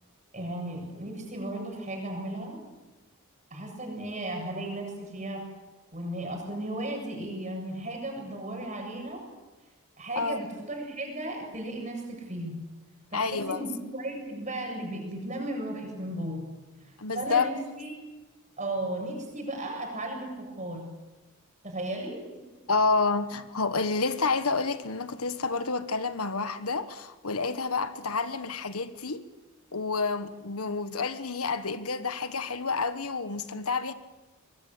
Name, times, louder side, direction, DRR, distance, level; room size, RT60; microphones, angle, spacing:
voice 1, 0.3-2.6 3.5-5.4 5.9-9.2 10.0-12.6 13.1-16.5 17.1-17.9 18.6-20.8 21.6-22.2, right 1 dB, 30° right, 7.4 m, -35 dB
voice 2, 13.1-13.6 17.0-17.5 22.7-29.2 29.7-33.9, left 4 dB, 80° left, 1.4 m, -29 dB
25.0 x 22.0 x 8.5 m
head